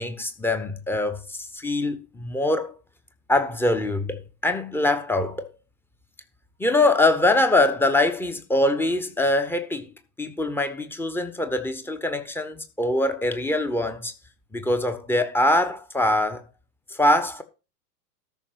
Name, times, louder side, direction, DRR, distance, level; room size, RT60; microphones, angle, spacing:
voice 1, 0.0-2.7 3.3-5.5 6.6-9.9 10.2-14.1 14.5-16.4 16.9-17.4, left 2 dB, 5° left, 0.9 m, -23 dB
13.5 x 6.1 x 4.6 m
figure-of-eight pair, 90°, 49 cm